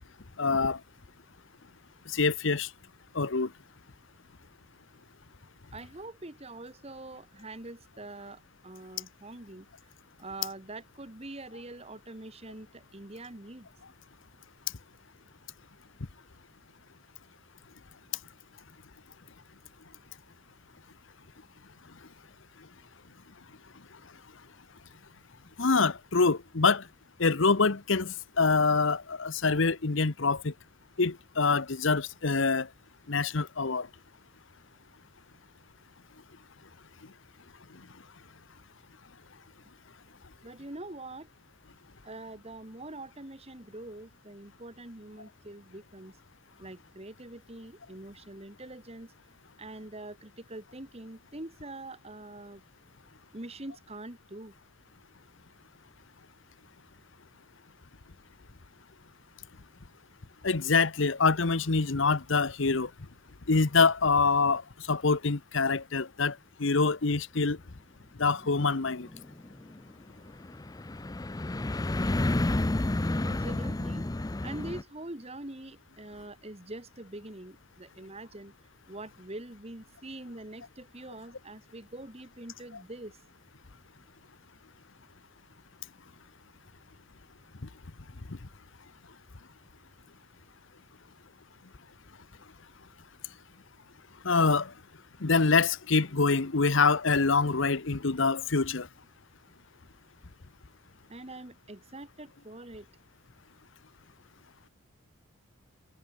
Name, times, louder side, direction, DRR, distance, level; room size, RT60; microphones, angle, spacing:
voice 1, 0.4-0.8 2.1-2.7 3.1-3.5 25.6-26.9 27.2-30.5 31.0-32.7 33.1-33.9 60.4-62.9 63.5-64.6 64.9-67.6 68.2-69.1 88.3-88.4 94.2-94.7 95.2-98.9, left 4 dB, 60° left, 1.0 m, -25 dB
voice 2, 5.7-9.7 10.2-13.7 40.4-41.3 42.0-46.2 46.6-49.1 49.6-52.6 53.3-54.5 73.2-74.1 74.4-78.5 78.9-83.2 101.1-102.9, right 2 dB, 30° right, 2.1 m, -44 dB
sound 1, 68.4-74.8, left 2 dB, 20° left, 0.5 m, -31 dB
head